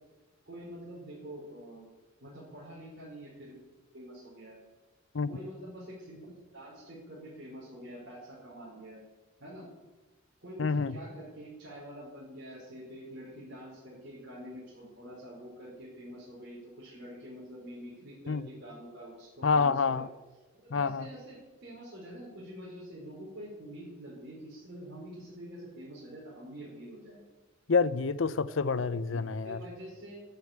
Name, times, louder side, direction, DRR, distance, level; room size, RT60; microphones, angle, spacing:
voice 1, 0.5-1.8 2.2-3.6 3.9-4.6 5.3-9.0 9.4-9.7 10.4-20.0 20.5-27.2 29.1-29.2 29.4-30.2, equal, 60° right, 4.7 m, -46 dB
voice 2, 10.6-11.0 18.3-18.5 19.4-20.1 20.7-21.1 27.7-29.6, left 4 dB, 65° left, 0.6 m, -28 dB
11.5 x 10.5 x 8.8 m
head